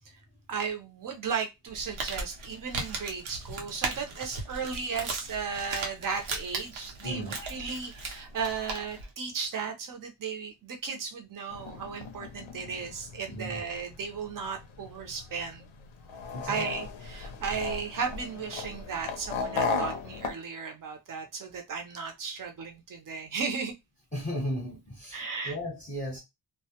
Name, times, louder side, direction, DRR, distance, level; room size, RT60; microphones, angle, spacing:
voice 1, 0.5-15.6 16.5-23.7 25.1-25.6, right 5 dB, 45° right, 0.6 m, -35 dB
Crumpling crinkling, 1.7-9.1, right 3 dB, 85° right, 0.8 m, -37 dB
voice 2, 7.0-7.6 13.3-13.6 16.3-16.7 24.1-26.2, equal, 15° left, 0.7 m, -35 dB
sound 1, 11.5-20.3, left 4 dB, 80° left, 0.6 m, -36 dB
2.1 x 2.1 x 2.8 m
wide cardioid pair, 150°, 47 cm